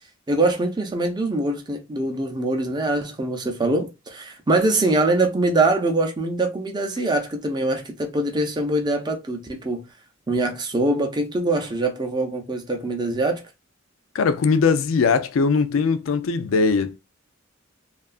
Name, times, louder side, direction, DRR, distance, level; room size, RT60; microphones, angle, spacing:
voice 1, 0.3-9.8 10.3-13.4, right 2 dB, 20° right, 0.5 m, -23 dB
voice 2, 14.1-17.0, left 5 dB, 75° left, 0.4 m, -20 dB
2.7 x 2.3 x 2.4 m
head